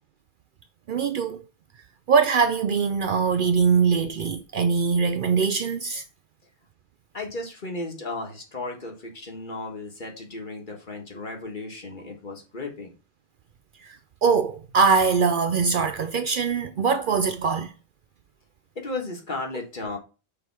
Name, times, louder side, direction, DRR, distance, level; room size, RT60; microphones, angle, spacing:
voice 1, 0.9-1.4 2.1-6.0 13.8-14.0 14.2-17.7, right 5 dB, 60° right, 0.6 m, -22 dB
voice 2, 7.1-12.9 18.7-20.0, left 2 dB, 50° left, 1.6 m, -35 dB
6.9 x 3.4 x 4.6 m
omnidirectional pair, 1.1 m